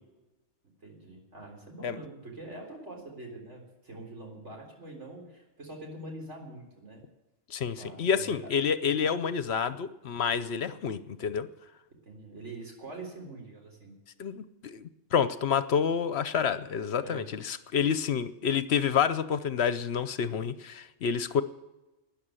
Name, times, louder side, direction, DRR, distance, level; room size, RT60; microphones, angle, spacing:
voice 1, 0.8-7.0 7.8-8.5 12.1-13.9 17.0-17.3, right 2 dB, 70° right, 1 dB, 4.1 m, -44 dB
voice 2, 7.5-11.5 14.2-21.4, left 7 dB, 65° left, 13 dB, 0.9 m, -28 dB
13.0 x 10.0 x 8.9 m, 1.1 s
omnidirectional pair, 1.2 m